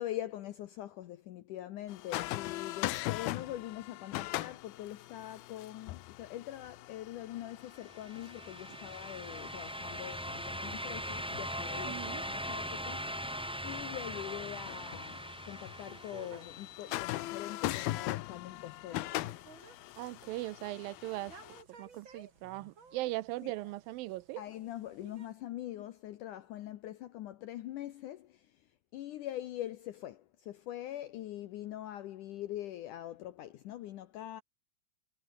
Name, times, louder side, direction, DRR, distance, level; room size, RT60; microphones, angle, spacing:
voice 1, 0.0-13.3 13.6-19.3 23.4-23.5 24.4-28.5 28.9-34.4, left 13 dB, 70° left, 2.2 m, -43 dB
sound 1, 1.9-21.6, left 17 dB, 90° left, 2.7 m, -41 dB
sound 2, 7.8-16.7, equal, ahead, 3.1 m, -40 dB
voice 2, 11.8-12.2 20.0-21.3 21.7-24.4, right 18 dB, 80° right, 2.3 m, -39 dB
sound 3, 13.8-25.3, right 5 dB, 35° right, 3.5 m, -58 dB
omnidirectional pair, 4.3 m